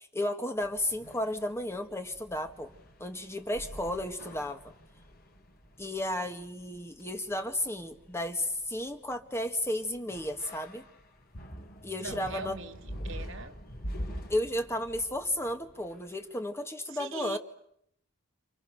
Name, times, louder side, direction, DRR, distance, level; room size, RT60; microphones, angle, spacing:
voice 1, 0.0-2.7 3.0-4.6 5.8-10.8 11.8-12.6 14.3-17.4, left 1 dB, 10° left, 2.0 m, -33 dB
sound 1, 0.6-16.2, equal, 45° left, 3.8 m, -45 dB
voice 2, 12.0-13.6 16.9-17.4, right 3 dB, 60° right, 2.2 m, -41 dB
29.5 x 29.0 x 6.8 m
head